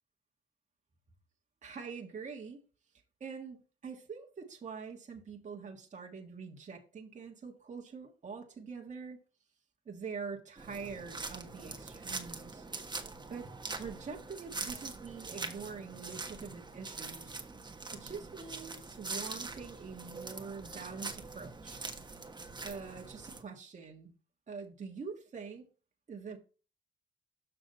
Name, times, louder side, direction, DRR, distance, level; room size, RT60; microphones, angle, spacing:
voice 1, 1.6-2.6 3.2-9.2 9.8-12.6 13.3-13.5 13.8-17.4 17.9-21.8 22.6-24.1 24.5-25.7 26.1-26.4, right 5 dB, 40° right, 1.6 m, -45 dB
sound 1, 10.6-23.4, right 3 dB, 20° right, 1.4 m, -43 dB
7.0 x 6.0 x 4.1 m
cardioid pair, 90°, 20 cm